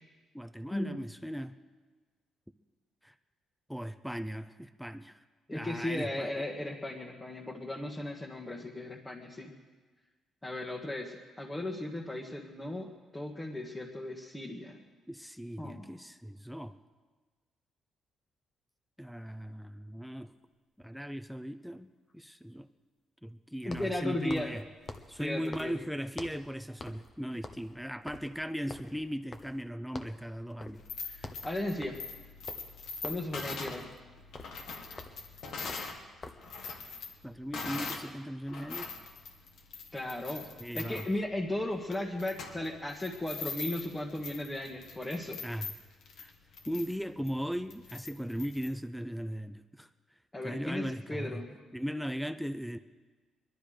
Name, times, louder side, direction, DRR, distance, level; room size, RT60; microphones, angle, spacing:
voice 1, 0.3-1.6 3.0-3.1 3.7-5.2 5.5-6.4 15.1-16.8 19.0-20.3 20.8-22.7 23.2-24.6 25.1-31.4 37.2-38.9 40.6-41.1 45.4-45.7 46.2-46.3 46.7-49.9 50.4-51.5 51.7-52.8, equal, ahead, 9 dB, 0.6 m, -38 dB
voice 2, 5.5-9.5 10.4-14.8 15.6-15.9 23.6-24.5 25.2-25.7 31.4-32.0 33.0-33.9 39.9-40.5 40.7-45.4 50.3-51.6, left 1 dB, 15° left, -2 dB, 1.6 m, -36 dB
sound 1, 20.3-20.4 23.6-26.5 26.8-27.1 27.4-29.7 29.9-30.3 30.6-30.9 31.1-36.5, left 3 dB, 35° left, 1.2 m, -47 dB
sound 2, 30.7-36.0 36.3-38.1 38.5-48.7, left 4 dB, 70° left, 2.0 m, -42 dB
21.0 x 12.0 x 5.1 m, 1.4 s
cardioid pair, 90°, 0 cm